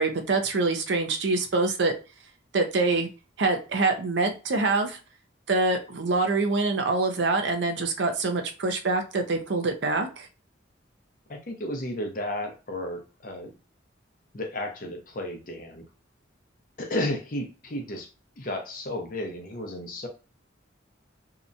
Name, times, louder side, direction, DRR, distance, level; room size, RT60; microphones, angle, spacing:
voice 1, 0.0-1.9 2.5-3.1 3.4-5.0 5.5-10.3, right 3 dB, 65° right, 5 dB, 0.5 m, -25 dB
voice 2, 11.3-13.5 14.3-15.8 16.8-18.1 18.4-20.1, left 1 dB, 45° left, 3 dB, 0.6 m, -33 dB
2.8 x 2.1 x 2.5 m, 0.33 s
head